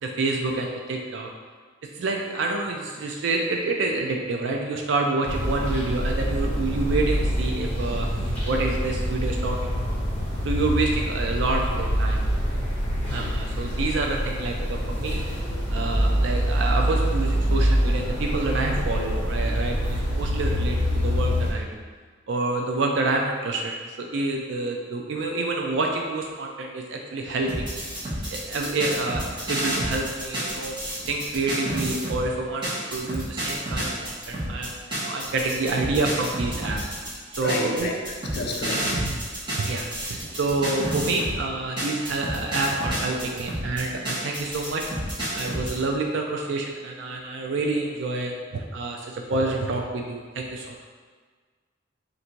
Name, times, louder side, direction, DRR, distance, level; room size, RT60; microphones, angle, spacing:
voice 1, 0.0-1.3 2.0-9.6 9.9-10.0 10.4-12.2 13.1-15.2 15.7-21.8 22.3-27.6 28.3-30.7 31.1-36.8 37.3-37.9 38.8-39.2 39.6-44.8 45.3-50.9, right 3 dB, 65° right, 1 dB, 0.4 m, -28 dB
sound 1, 5.3-21.5, equal, 5° left, 1.2 m, -25 dB
sound 2, 27.5-32.2 32.6-41.4 41.8-45.7, right 1 dB, 25° right, 1.2 m, -30 dB
voice 2, 37.3-39.0, left 2 dB, 55° left, 1 dB, 0.5 m, -31 dB
3.4 x 2.6 x 4.4 m, 1.5 s
head